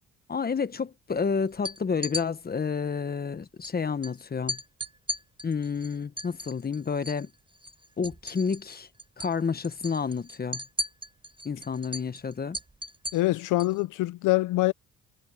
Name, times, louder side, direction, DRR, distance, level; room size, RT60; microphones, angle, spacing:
voice 1, 0.3-4.6 5.4-7.3 8.0-8.9 9.2-10.6 11.4-12.6, left 5 dB, 30° left, 1.2 m, -30 dB
sound 1, 1.5-2.3 3.6-3.7 4.0-4.1 4.5-7.3 7.5-8.7 9.0-9.3 9.6-13.8, equal, 15° right, 4.0 m, -36 dB
voice 2, 13.1-14.7, left 18 dB, 90° left, 0.6 m, -24 dB
cardioid pair, 90°, 30 cm